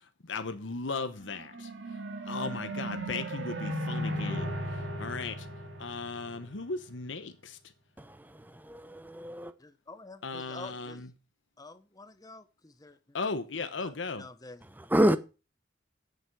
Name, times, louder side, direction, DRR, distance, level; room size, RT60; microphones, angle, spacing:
voice 1, 0.3-1.7 2.3-4.6 5.0-5.4 5.8-7.6 10.2-11.1 13.1-14.3, left 4 dB, 90° left, 1.0 m, -36 dB
sound 1, 1.2-6.7, right 1 dB, 80° right, 2.8 m, -36 dB
voice 2, 8.6-9.5 14.9-15.2, right 1 dB, 10° right, 0.8 m, -26 dB
voice 3, 9.6-11.0 11.6-13.3 13.8-14.6, left 2 dB, 20° left, 1.0 m, -48 dB
8.8 x 7.9 x 6.2 m
head